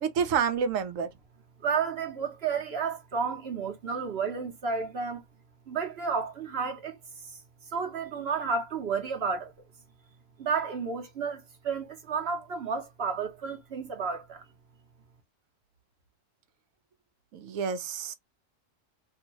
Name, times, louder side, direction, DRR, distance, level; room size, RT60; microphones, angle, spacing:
voice 1, 0.0-1.1 17.3-18.1, right 7 dB, 80° right, 1.0 m, -28 dB
voice 2, 1.6-5.2 5.7-7.0 7.7-9.5 10.4-14.4, right 5 dB, 55° right, 1.0 m, -31 dB
2.8 x 2.7 x 2.8 m
omnidirectional pair, 1.4 m